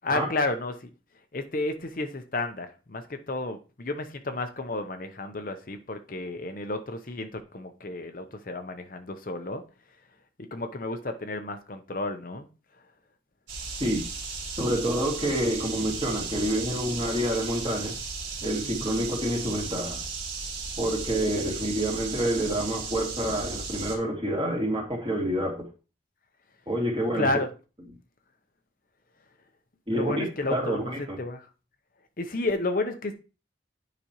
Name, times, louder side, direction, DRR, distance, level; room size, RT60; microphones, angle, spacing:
voice 1, 0.0-0.9 1.3-9.6 10.4-12.5 12.7-12.8 18.6-19.1 27.1-27.5 29.9-30.9 31.2-31.5 32.2-33.2, left 2 dB, 50° left, 0.7 m, -32 dB
sound 1, 13.5-24.0, right 4 dB, 90° right, 3.6 m, -35 dB
voice 2, 14.6-18.0 18.4-20.0 20.8-25.7 26.7-27.3 29.9-31.2, right 1 dB, 30° right, 2.3 m, -28 dB
9.9 x 5.1 x 3.0 m
head